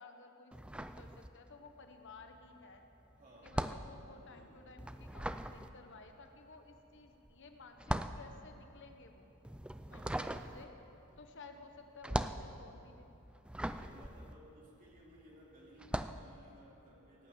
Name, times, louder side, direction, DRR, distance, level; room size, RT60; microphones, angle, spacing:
voice 1, 0.0-2.8 3.4-9.3 9.9-10.7 11.2-13.1 13.7-13.8, left 3 dB, 60° left, 5 dB, 1.1 m, -56 dB
sound 1, 0.5-1.7 2.0-15.2 15.7-16.3, right 1 dB, 5° right, 0.4 m, -40 dB
voice 2, 3.2-3.9 4.2-4.6 9.9-10.2 13.6-17.3, equal, 40° right, -4 dB, 3.5 m, -60 dB
17.5 x 9.0 x 8.7 m, 2.9 s
head